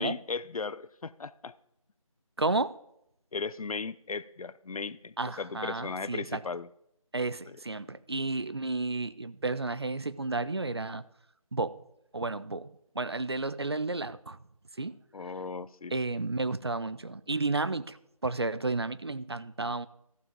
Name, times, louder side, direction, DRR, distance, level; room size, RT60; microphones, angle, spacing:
voice 1, 0.0-1.5 3.3-6.7 7.5-7.6 15.1-15.9, left 4 dB, 85° left, 0.5 m, -36 dB
voice 2, 2.4-2.7 5.2-6.4 7.1-11.0 11.5-11.8 12.1-12.7 13.0-14.4 14.8-15.0 15.9-18.0 18.2-19.9, right 3 dB, 45° right, 0.4 m, -32 dB
14.0 x 5.7 x 5.2 m
figure-of-eight pair, 175°, 18 cm